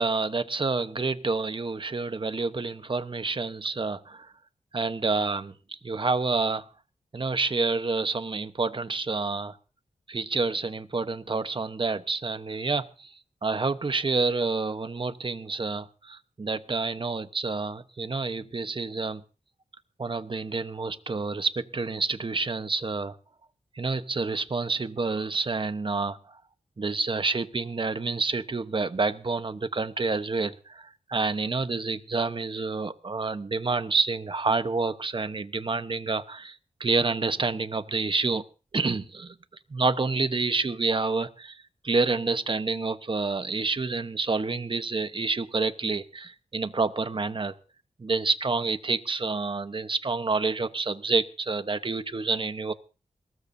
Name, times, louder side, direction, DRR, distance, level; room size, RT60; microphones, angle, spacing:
voice 1, 0.0-4.3 4.7-6.6 7.1-9.6 10.1-13.1 13.4-19.2 20.0-23.2 23.7-26.2 26.8-38.4 38.7-39.3 39.7-47.5 48.0-52.7, right 3 dB, 40° right, 11 dB, 1.1 m, -28 dB
22.0 x 19.0 x 2.8 m, 0.35 s
wide cardioid pair, 100°, 13 cm